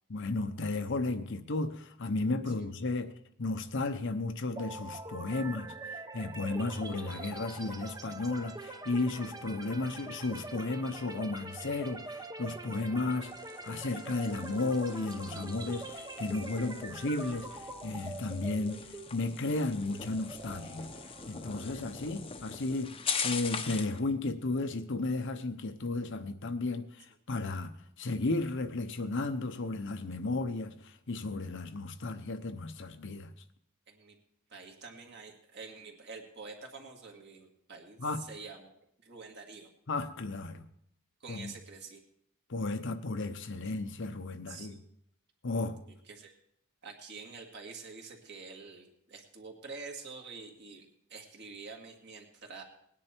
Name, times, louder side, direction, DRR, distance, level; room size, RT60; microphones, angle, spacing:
voice 1, 0.1-3.1 3.4-13.3 13.6-17.5 17.8-18.8 19.1-20.9 21.3-22.9 23.2-33.3 38.0-38.2 39.9-40.7 41.3-41.5 42.5-44.8 45.4-45.8, left 2 dB, 55° left, 0.8 m, -34 dB
sound 1, 4.6-22.3, right 2 dB, 15° right, 0.7 m, -45 dB
sound 2, 13.3-24.0, left 6 dB, 25° left, 0.8 m, -42 dB
voice 2, 34.5-38.7 39.0-39.7 41.2-42.0 44.5-44.8 46.1-46.3 46.8-52.6, right 4 dB, 50° right, 2.1 m, -47 dB
19.0 x 10.0 x 4.5 m
head